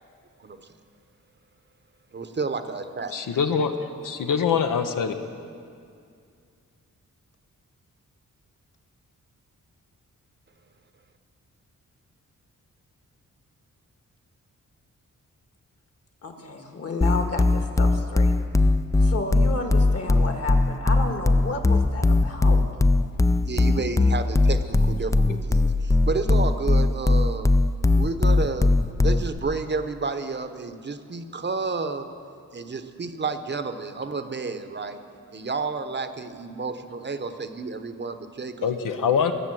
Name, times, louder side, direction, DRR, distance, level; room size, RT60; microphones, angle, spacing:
voice 1, 2.1-3.1 23.4-27.5 27.9-28.7 29.0-32.1 32.5-35.0 35.3-38.7, right 4 dB, 35° right, 9 dB, 0.8 m, -31 dB
voice 2, 3.1-3.7 4.0-5.1 38.6-39.3, left 6 dB, 85° left, 6 dB, 0.9 m, -23 dB
voice 3, 16.2-18.3 19.0-22.6, left 3 dB, 50° left, 4 dB, 1.8 m, -32 dB
sound 1, 17.0-29.4, left 2 dB, 10° left, 0.3 m, -19 dB
20.0 x 6.9 x 7.7 m, 2.3 s
wide cardioid pair, 100°, 31 cm